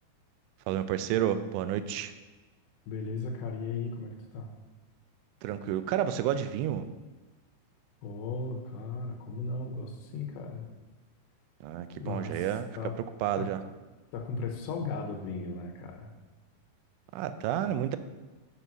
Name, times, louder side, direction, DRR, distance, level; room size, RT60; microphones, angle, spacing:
voice 1, 0.7-2.1 5.4-6.9 11.6-12.7 13.2-13.6 17.1-18.0, right 10 dB, 85° right, 12 dB, 3.0 m, -30 dB
voice 2, 2.9-4.5 8.0-10.7 12.0-12.5 12.8-12.9 13.4-13.5 14.1-16.1, left 4 dB, 75° left, 2 dB, 3.1 m, -36 dB
8.1 x 6.2 x 6.0 m, 1.2 s
omnidirectional pair, 5.4 m